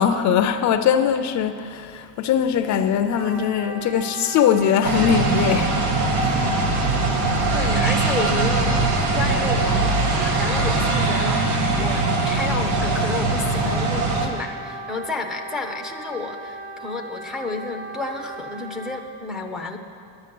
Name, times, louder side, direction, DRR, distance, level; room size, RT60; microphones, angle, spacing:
voice 1, 0.0-5.7, left 8 dB, 45° left, 0.5 m, -21 dB
Wind instrument woodwind instrument, 3.1-19.0, right 3 dB, 35° right, 1.3 m, -37 dB
sound 1, 4.8-14.3, right 3 dB, 85° right, 1.8 m, -21 dB
voice 2, 7.5-19.8, left 3 dB, ahead, 0.5 m, -31 dB
10.5 x 9.9 x 7.7 m
cardioid pair, 170°, 39 cm